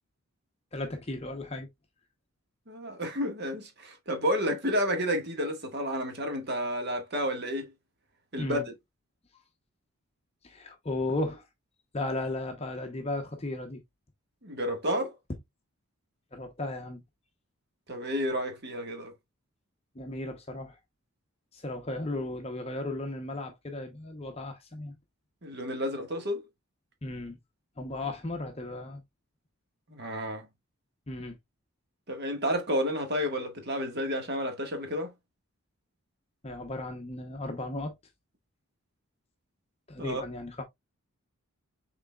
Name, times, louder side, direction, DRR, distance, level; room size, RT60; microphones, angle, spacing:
voice 1, 0.7-1.7 8.4-8.6 9.3-9.4 10.4-11.5 11.9-13.8 16.3-17.0 19.9-20.8 21.5-25.0 27.0-27.4 27.8-29.0 31.1-31.4 36.4-37.9 39.9-40.6, left 2 dB, 25° left, 0.7 m, -35 dB
voice 2, 2.7-7.7 8.3-8.7 14.4-15.1 17.9-19.1 25.4-26.4 29.9-30.5 32.1-35.1 40.0-40.2, equal, 50° right, 1.4 m, -31 dB
6.0 x 3.9 x 2.2 m
head